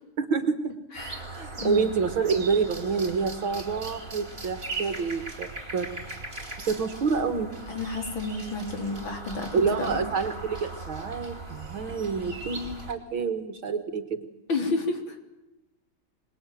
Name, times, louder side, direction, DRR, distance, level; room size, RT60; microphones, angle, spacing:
voice 1, 0.2-0.7 1.3-5.9 6.7-7.5 9.5-14.3, right 5 dB, 70° right, 8 dB, 2.4 m, -28 dB
voice 2, 0.9-1.2 1.5-1.9 6.6-6.7 7.7-10.0 14.5-15.2, left 3 dB, 65° left, 4 dB, 4.3 m, -31 dB
sound 1, 0.9-12.9, right 2 dB, 25° right, 4.0 m, -39 dB
26.0 x 20.5 x 9.3 m, 0.98 s
omnidirectional pair, 2.3 m